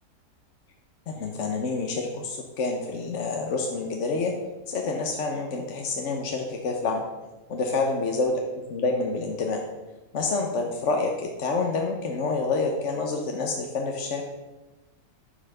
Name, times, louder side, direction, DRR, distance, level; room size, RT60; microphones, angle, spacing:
voice 1, 1.1-4.3 4.7-7.0 7.5-9.6 10.1-14.2, left 3 dB, 50° left, 2 dB, 1.1 m, -28 dB
10.0 x 5.6 x 6.6 m, 1.1 s
omnidirectional pair, 1.8 m